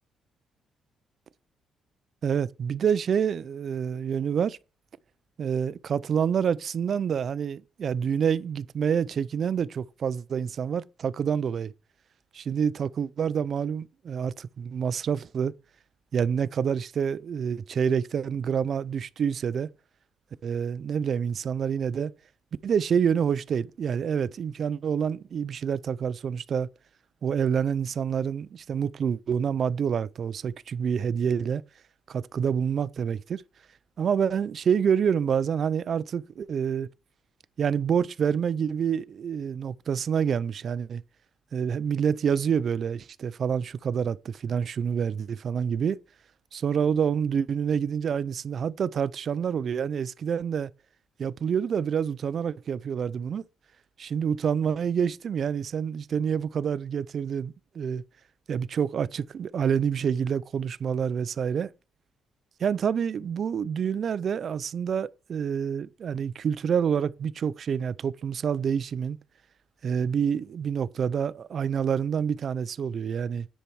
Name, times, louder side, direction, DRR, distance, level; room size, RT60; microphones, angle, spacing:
voice 1, 2.2-4.6 5.4-11.7 12.3-15.5 16.1-19.7 20.4-22.1 22.6-26.7 27.2-31.6 32.1-33.4 34.0-36.9 37.6-41.0 41.5-46.0 46.5-50.7 51.2-53.4 54.0-58.0 58.5-61.7 62.6-69.2 69.8-73.5, right 7 dB, 45° right, 0.4 m, -27 dB
10.0 x 4.5 x 5.6 m
cardioid pair, 150°, 0 cm